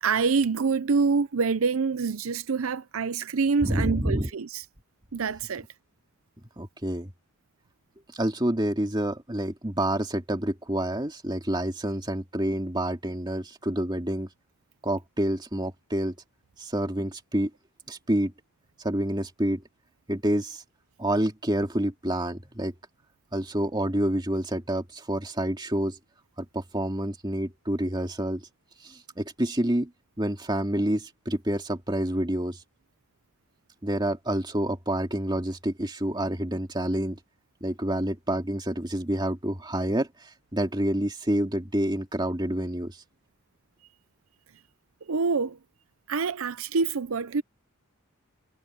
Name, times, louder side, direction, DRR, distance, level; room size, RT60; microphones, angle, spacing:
voice 1, 0.0-4.6 5.1-5.6 45.1-45.6 46.1-47.4, right 4 dB, 80° right, 0.6 m, -26 dB
voice 2, 3.6-4.3 6.6-7.1 8.1-14.3 14.8-16.1 16.6-17.5 17.9-18.3 18.8-19.6 20.1-20.6 21.0-22.7 23.3-26.0 26.4-28.4 28.8-29.9 30.2-32.6 33.8-37.2 37.6-43.0, right 1 dB, 20° right, 2.4 m, -28 dB
head